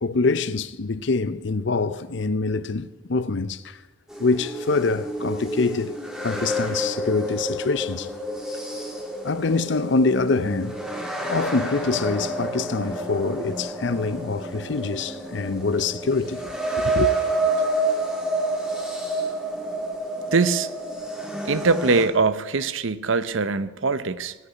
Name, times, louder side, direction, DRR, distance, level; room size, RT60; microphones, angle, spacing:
voice 1, 0.0-3.8 4.2-6.0 6.2-8.1 9.2-10.8 11.3-16.5 16.8-17.1, left 3 dB, 60° left, 0.6 m, -25 dB
sound 1, 4.1-22.0, right 1 dB, 5° right, 2.3 m, -29 dB
voice 2, 20.3-20.7 21.5-24.3, right 4 dB, 70° right, 0.7 m, -22 dB
18.5 x 6.8 x 9.2 m
head